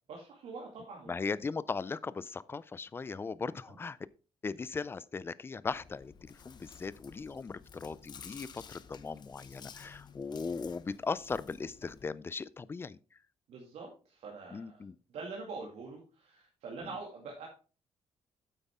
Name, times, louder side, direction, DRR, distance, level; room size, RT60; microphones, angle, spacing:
voice 1, 0.1-1.5 3.7-3.8 10.5-10.7 13.5-14.8 15.1-17.4, right 4 dB, 75° right, 2.2 m, -45 dB
voice 2, 1.1-4.0 4.4-13.0 14.5-14.9, left 4 dB, 20° left, 0.3 m, -38 dB
Chewing mastication, 5.7-12.0, left 7 dB, 40° left, 0.8 m, -53 dB
9.0 x 8.3 x 3.6 m
cardioid pair, 155°, 11 cm